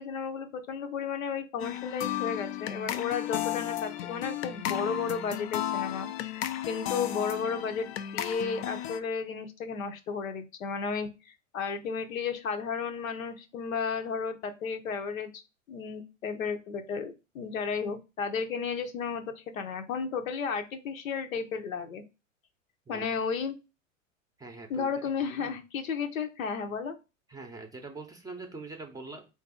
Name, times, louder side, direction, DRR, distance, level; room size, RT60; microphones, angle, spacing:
voice 1, 0.0-15.3 15.7-22.0 22.9-23.5 24.7-27.0, left 6 dB, 80° left, 7 dB, 0.8 m, -33 dB
sound 1, 1.6-9.0, left 12 dB, 50° left, 0.5 m, -34 dB
voice 2, 24.4-24.9 25.2-25.6 27.3-29.3, right 3 dB, 10° right, 4 dB, 0.6 m, -43 dB
3.9 x 2.6 x 3.7 m, 0.28 s
hypercardioid pair, 100°, 40 cm